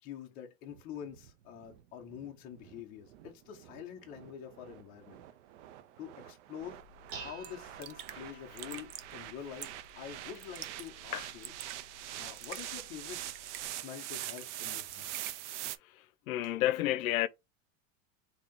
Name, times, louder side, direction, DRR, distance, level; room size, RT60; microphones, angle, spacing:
voice 1, 0.0-5.2 6.0-6.8 7.1-11.5 12.1-13.2 13.7-15.1, left 9 dB, 20° left, 0.6 m, -46 dB
sound 1, 0.7-15.8, right 13 dB, 60° right, 0.5 m, -45 dB
Dishes pots and pans, 6.6-13.7, right 3 dB, 35° right, 0.9 m, -53 dB
Raindrop / Drip, 7.1-7.2 7.4-7.5 7.8-8.2 8.6-9.1 9.6-9.9 10.3-10.9 11.2-11.8 12.3-12.7 13.3-13.7 14.1-14.6 14.9-15.4, right 11 dB, 85° right, 0.8 m, -46 dB
voice 2, 15.9-17.3, left 14 dB, 85° left, 0.6 m, -31 dB
3.8 x 2.8 x 3.6 m
supercardioid pair, 180°, 41 cm